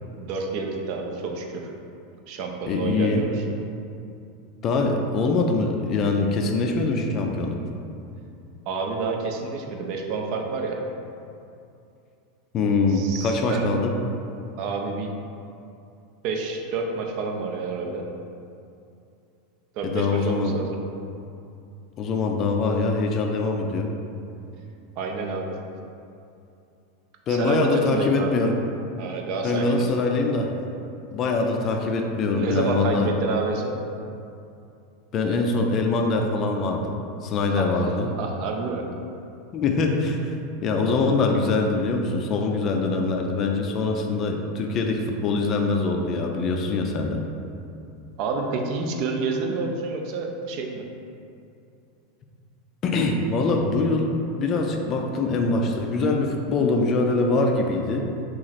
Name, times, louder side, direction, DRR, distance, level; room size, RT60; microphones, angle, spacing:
voice 1, 0.2-1.7 2.3-3.4 8.7-10.8 12.9-13.7 14.6-15.1 16.2-18.0 19.8-20.8 25.0-25.6 27.3-28.4 29.0-29.9 32.3-33.8 37.5-37.9 38.2-38.9 48.2-50.8, right 4 dB, 55° right, 2 dB, 0.4 m, -29 dB
voice 2, 2.7-3.2 4.6-7.6 12.5-13.9 19.8-20.6 22.0-23.9 27.3-28.6 29.4-30.5 31.1-33.1 35.1-36.9 37.2-38.1 39.5-40.3 40.6-47.2 52.8-58.1, left 3 dB, 35° left, 2 dB, 0.4 m, -23 dB
3.0 x 2.4 x 4.0 m, 2.6 s
supercardioid pair, 135°, 0 cm